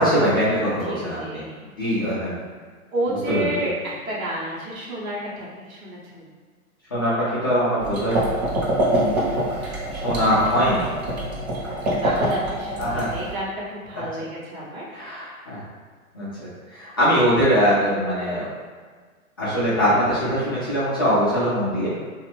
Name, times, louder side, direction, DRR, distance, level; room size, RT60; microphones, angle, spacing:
voice 1, 0.0-1.4 1.8-2.3 3.3-3.5 6.9-7.1 7.4-8.2 8.8-9.3 9.9-10.9 12.8-13.1 14.9-15.6 16.1-16.3 16.7-18.5 19.4-21.9, equal, 20° left, -12 dB, 0.3 m, -22 dB
voice 2, 0.8-1.5 2.9-6.3 11.5-15.5, right 1 dB, 75° right, -5 dB, 1.1 m, -31 dB
sound 1, 7.8-13.3, right 1 dB, 45° right, 1.0 m, -25 dB
2.8 x 2.4 x 3.1 m, 1.5 s
figure-of-eight pair, 120°, 42 cm